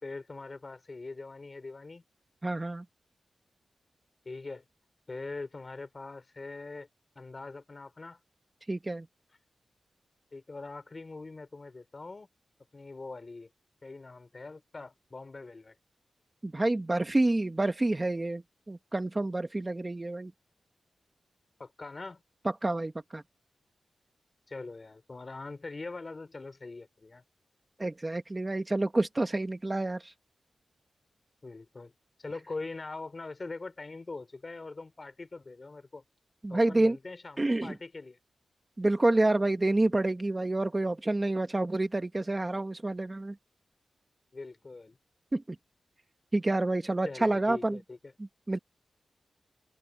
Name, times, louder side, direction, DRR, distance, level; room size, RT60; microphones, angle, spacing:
voice 1, 0.0-2.0 4.2-4.7 5.1-6.9 7.1-8.2 10.3-12.3 12.7-13.5 13.8-15.7 21.6-22.2 24.5-27.2 31.4-31.9 32.2-36.0 36.5-38.2 44.3-45.0 47.0-48.1, left 3 dB, 30° left, 4.6 m, -42 dB
voice 2, 2.4-2.8 8.7-9.1 16.4-20.3 22.4-23.2 27.8-30.1 36.4-37.0 37.4-37.7 38.8-43.4 45.3-45.6 46.3-47.8 48.5-48.6, right 2 dB, 20° right, 1.0 m, -28 dB
open air
wide cardioid pair, 150°, 0 cm